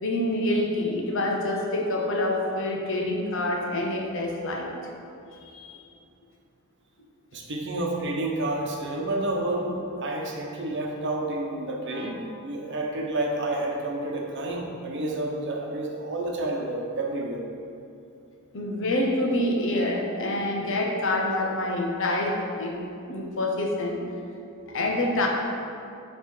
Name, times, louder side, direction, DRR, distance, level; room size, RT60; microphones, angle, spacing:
voice 1, 0.0-4.7 5.5-5.7 18.5-22.8 23.1-24.3 24.7-25.3, left 1 dB, 65° left, 0 dB, 0.9 m, -27 dB
voice 2, 7.3-17.4, right 2 dB, 55° right, 0 dB, 0.9 m, -30 dB
7.9 x 3.2 x 4.7 m, 2.6 s
head